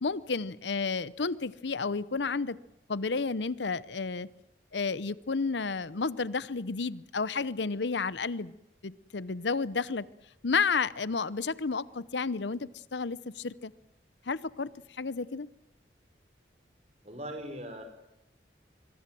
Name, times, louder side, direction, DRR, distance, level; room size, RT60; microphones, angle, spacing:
voice 1, 0.0-2.6 2.9-4.3 4.7-8.5 8.8-10.1 10.4-13.7 14.3-15.5, left 4 dB, 80° left, 18 dB, 0.8 m, -31 dB
voice 2, 17.0-17.8, equal, 40° right, 7 dB, 5.2 m, -39 dB
26.0 x 22.0 x 7.7 m, 0.89 s
head